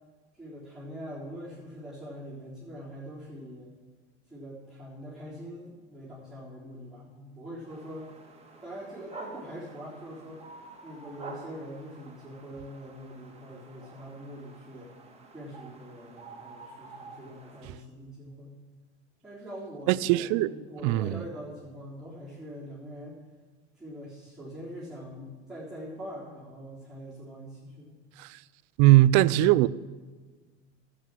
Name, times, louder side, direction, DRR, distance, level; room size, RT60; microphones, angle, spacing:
voice 1, 0.3-3.7 4.3-8.1 8.6-10.4 10.8-14.9 15.3-18.6 19.2-23.2 23.8-28.0, equal, ahead, 3.8 m, -43 dB
sound 1, 7.7-17.7, right 3 dB, 15° right, 2.2 m, -48 dB
voice 2, 19.9-20.5 20.8-21.2 28.2-28.4 28.8-29.7, right 16 dB, 55° right, 0.5 m, -20 dB
11.0 x 8.1 x 7.6 m
supercardioid pair, 100°, 35 cm